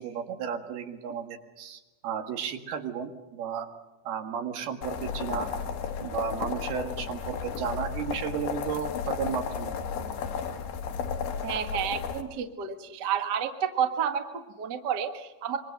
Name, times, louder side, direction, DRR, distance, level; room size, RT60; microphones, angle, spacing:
voice 1, 0.0-3.7 4.1-5.5 6.0-9.7, right 7 dB, 85° right, 5 dB, 3.7 m, -33 dB
sound 1, 4.8-12.2, left 6 dB, 90° left, 3.6 m, -33 dB
voice 2, 11.4-15.6, right 8 dB, 50° right, 6 dB, 1.3 m, -30 dB
25.5 x 23.5 x 6.6 m, 1.1 s
omnidirectional pair, 4.4 m